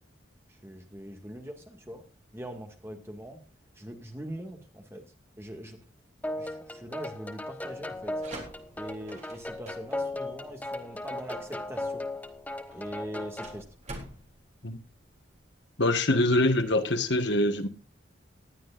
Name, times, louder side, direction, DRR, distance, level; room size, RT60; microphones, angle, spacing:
voice 1, 0.6-2.0 2.3-3.4 3.8-5.0 5.4-5.8 6.4-8.1 8.8-12.0 12.7-13.6, equal, 15° right, 2.1 m, -42 dB
sound 1, 6.2-13.6, left 1 dB, 10° left, 1.1 m, -37 dB
sound 2, 8.0-15.5, right 1 dB, 35° right, 3.7 m, -48 dB
voice 2, 15.8-17.7, left 1 dB, 60° left, 1.5 m, -24 dB
19.5 x 11.5 x 2.6 m
head